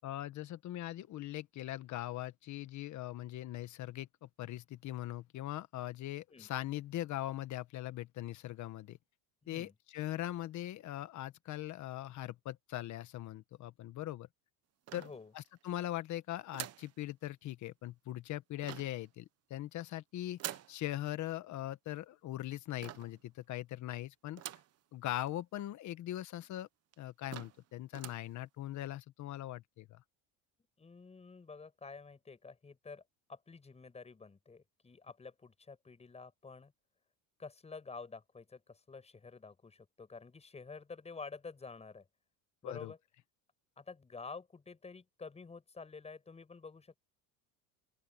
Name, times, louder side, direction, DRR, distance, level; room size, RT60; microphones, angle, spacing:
voice 1, 0.0-9.0 9.5-14.3 14.9-15.1 15.3-24.4 24.9-26.7 27.0-30.0 42.6-42.9, left 14 dB, 45° left, 1.3 m, -41 dB
voice 2, 9.4-9.7 14.9-15.3 30.8-33.0 33.3-36.7 37.4-42.1 42.6-43.0 43.8-47.0, left 4 dB, 15° left, 6.5 m, -49 dB
sound 1, 14.9-15.6 16.5-16.9 18.6-19.1 20.4-20.8 22.8-23.2 24.4-24.8 25.3-25.4 25.6-25.7 26.4-26.5 26.9-27.0 27.3-27.6 27.9-28.3, right 12 dB, 35° right, 1.1 m, -45 dB
open air
cardioid pair, 155°, 41 cm